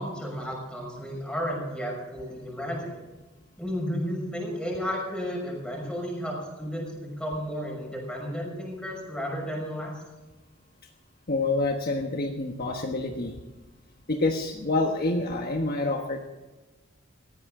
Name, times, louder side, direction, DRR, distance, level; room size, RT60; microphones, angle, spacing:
voice 1, 0.0-3.0 3.6-9.9, equal, 5° left, -1 dB, 6.0 m, -33 dB
voice 2, 11.3-13.4 14.1-16.3, left 2 dB, 50° left, 2 dB, 1.3 m, -27 dB
18.5 x 14.5 x 3.8 m, 1.2 s
head